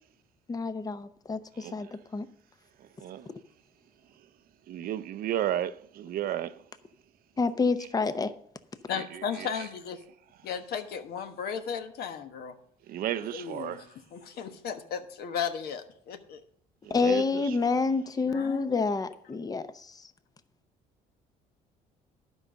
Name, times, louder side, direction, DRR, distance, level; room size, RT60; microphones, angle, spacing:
voice 1, 0.5-2.3 7.4-8.3 16.9-19.9, left 4 dB, 20° left, 0.7 m, -28 dB
voice 2, 1.5-1.9 3.0-3.3 4.7-6.6 8.9-9.0 9.4-9.5 12.9-13.8 16.8-17.8, right 12 dB, 60° right, 0.5 m, -33 dB
voice 3, 8.9-10.0 10.4-12.5 13.2-16.4 18.3-18.8, left 7 dB, 70° left, 1.3 m, -35 dB
12.0 x 5.4 x 6.3 m
cardioid pair, 110°, 17 cm